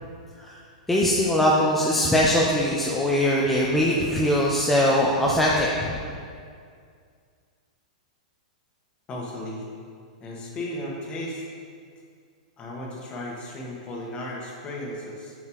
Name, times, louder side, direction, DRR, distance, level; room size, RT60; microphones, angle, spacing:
voice 1, 0.9-6.0, left 1 dB, 5° left, -4 dB, 0.5 m, -21 dB
voice 2, 9.1-9.6 10.2-11.4 12.6-15.3, left 1 dB, 25° left, -2 dB, 1.3 m, -35 dB
7.3 x 6.5 x 3.0 m, 2.2 s
hypercardioid pair, 145°, 4 cm